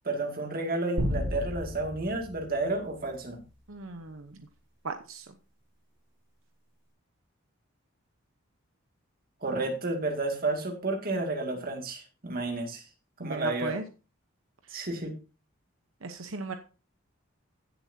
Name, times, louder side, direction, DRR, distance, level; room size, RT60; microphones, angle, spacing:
voice 1, 0.0-3.4 9.4-12.8 13.2-13.7 14.7-15.1, right 2 dB, 45° right, 2 dB, 2.3 m, -31 dB
sound 1, 1.0-3.6, equal, 65° right, 7.0 m, -34 dB
voice 2, 3.7-4.4 4.8-5.3 13.2-13.8 16.0-16.6, right 3 dB, 80° right, 7 dB, 1.0 m, -36 dB
16.0 x 7.1 x 2.8 m, 0.32 s
head